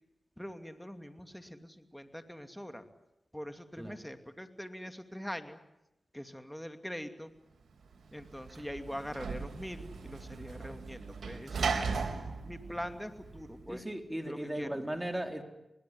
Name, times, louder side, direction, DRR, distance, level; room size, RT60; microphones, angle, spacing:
voice 1, 0.4-2.9 3.3-5.6 6.1-7.3 8.1-11.9 12.4-13.8 14.2-14.8, equal, 5° left, 8 dB, 2.6 m, -43 dB
Sliding door / Slam, 7.9-13.7, right 5 dB, 75° right, 3.8 m, -38 dB
voice 2, 13.7-15.4, right 1 dB, 15° right, 6 dB, 3.6 m, -37 dB
26.5 x 20.0 x 9.8 m, 0.91 s
cardioid pair, 40°, 0 cm